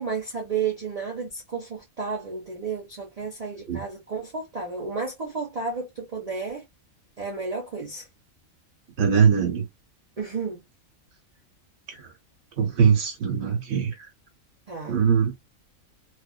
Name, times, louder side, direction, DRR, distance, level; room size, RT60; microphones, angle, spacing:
voice 1, 0.0-6.6 7.2-8.1 10.2-10.6 14.7-15.0, right 5 dB, 35° right, 0.7 m, -32 dB
voice 2, 9.0-9.6 12.6-13.9 14.9-15.3, right 7 dB, 55° right, 1.1 m, -21 dB
2.4 x 2.4 x 2.3 m
omnidirectional pair, 1.4 m